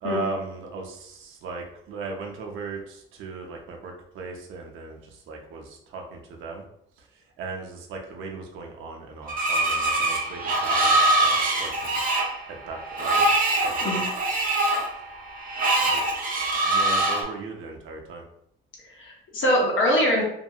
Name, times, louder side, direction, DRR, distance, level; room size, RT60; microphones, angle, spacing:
voice 1, 0.0-5.0 5.3-6.6 7.4-12.1 12.4-13.3 13.6-14.0 15.8-16.0 16.6-18.2, right 4 dB, 85° right, 1 dB, 0.6 m, -37 dB
Screech, 9.3-17.2, right 2 dB, 45° right, 0.7 m, -23 dB
voice 2, 18.9-20.2, equal, 75° left, -1 dB, 0.9 m, -23 dB
2.7 x 2.6 x 2.3 m, 0.73 s
cardioid pair, 90°, 20 cm